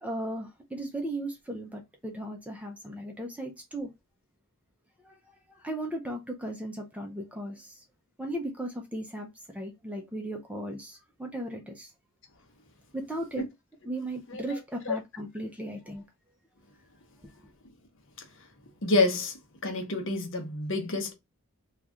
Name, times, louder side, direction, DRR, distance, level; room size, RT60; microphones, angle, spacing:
voice 1, 0.0-3.9 5.0-5.1 5.6-7.7 8.2-9.3 9.5-11.9 12.9-13.4 13.8-16.0, right 1 dB, 5° right, 0.5 m, -36 dB
voice 2, 18.8-19.3 19.6-21.1, left 2 dB, 60° left, 0.9 m, -28 dB
3.0 x 2.4 x 3.7 m
head